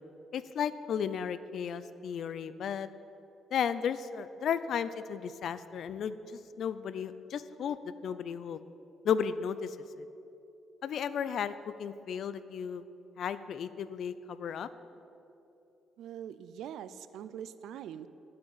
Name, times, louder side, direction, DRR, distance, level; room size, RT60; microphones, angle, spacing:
voice 1, 0.3-2.9 3.5-8.6 9.0-10.1 10.8-11.5 11.8-12.8 13.2-14.7, left 7 dB, 65° left, 14 dB, 0.6 m, -34 dB
voice 2, 16.0-18.1, right 9 dB, 80° right, 14 dB, 0.5 m, -43 dB
9.8 x 8.6 x 9.1 m, 2.8 s
cardioid pair, 90°, 0 cm